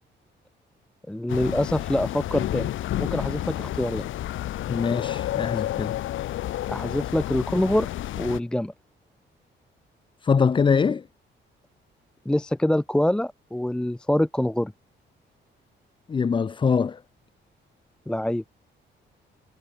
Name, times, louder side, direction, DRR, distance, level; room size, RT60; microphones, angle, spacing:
voice 1, 1.1-2.7 3.0-4.1 6.7-7.9 8.2-8.7 12.3-14.7 18.1-18.5, left 1 dB, 5° left, 0.6 m, -25 dB
sound 1, 1.3-8.4, left 13 dB, 85° left, 2.4 m, -30 dB
voice 2, 4.7-6.0 10.2-11.0 16.1-17.0, left 5 dB, 25° left, 1.1 m, -23 dB
cardioid pair, 175°, 20 cm